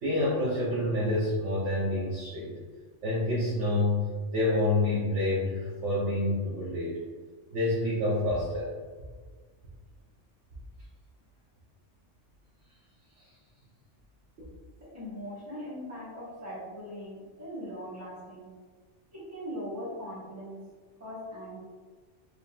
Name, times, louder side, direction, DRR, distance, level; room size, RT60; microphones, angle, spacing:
voice 1, 0.0-2.5 3.0-4.1 4.3-7.0 7.5-8.7 14.4-14.5, left 1 dB, 75° right, -8 dB, 1.2 m, -28 dB
voice 2, 14.8-18.5 19.1-20.7 21.0-21.6, equal, 15° right, -8 dB, 1.3 m, -40 dB
5.0 x 2.8 x 2.4 m, 1.4 s
omnidirectional pair, 1.3 m